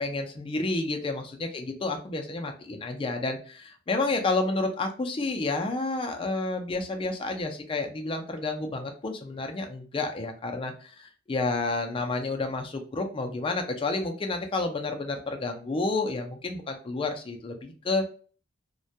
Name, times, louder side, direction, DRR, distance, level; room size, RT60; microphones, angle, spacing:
voice 1, 0.0-18.1, left 3 dB, 25° left, 4 dB, 0.4 m, -30 dB
2.2 x 2.1 x 2.6 m, 0.41 s
head